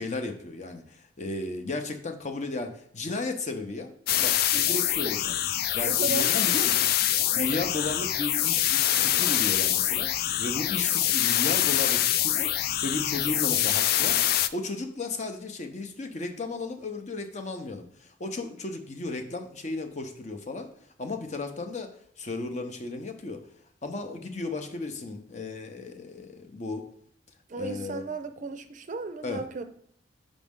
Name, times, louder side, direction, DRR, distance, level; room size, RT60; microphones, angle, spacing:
voice 1, 0.0-3.9 4.2-4.4 4.7-5.4 5.7-6.9 7.3-20.7 21.0-23.4 23.8-26.9 27.5-28.0 29.2-29.4, left 3 dB, 40° left, 6 dB, 0.7 m, -34 dB
sound 1, 4.1-14.5, left 12 dB, 55° left, 0.3 m, -25 dB
voice 2, 5.8-6.5 7.3-7.7 27.5-29.6, right 4 dB, 45° right, 8 dB, 0.5 m, -35 dB
5.2 x 5.1 x 3.6 m, 0.64 s
head